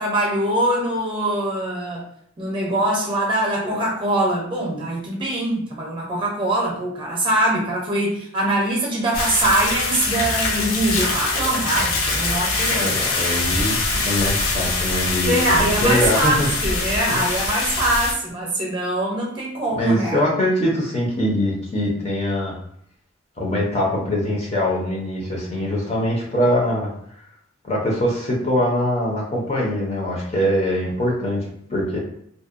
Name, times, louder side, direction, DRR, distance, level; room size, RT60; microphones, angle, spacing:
voice 1, 0.0-2.0 2.4-12.9 15.3-20.2, right 1 dB, 25° right, -2 dB, 0.6 m, -23 dB
sound 1, 9.1-18.1, left 3 dB, 80° left, 0.5 m, -23 dB
voice 2, 12.7-13.8 14.0-16.5 17.1-17.2 19.7-22.6 23.4-26.9 27.6-32.0, left 1 dB, 30° left, -3 dB, 0.5 m, -23 dB
2.6 x 2.0 x 2.4 m, 0.67 s
head